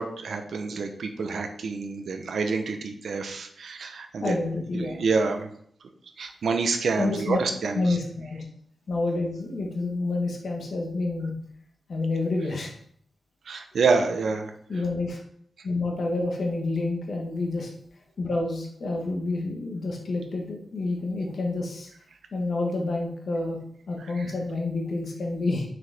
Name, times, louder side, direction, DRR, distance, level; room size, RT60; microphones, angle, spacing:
voice 1, 0.0-4.4 4.7-5.5 6.2-8.0 13.5-14.5 24.1-24.3, right 4 dB, 65° right, 6 dB, 0.7 m, -27 dB
voice 2, 4.2-5.0 7.0-7.4 7.7-8.4 8.9-11.3 11.9-12.7 14.7-15.2 15.6-17.7 18.2-21.9 22.3-23.6 23.9-25.6, left 2 dB, 55° left, 0 dB, 1.0 m, -28 dB
6.0 x 4.7 x 3.3 m, 0.64 s
wide cardioid pair, 175°, 0 cm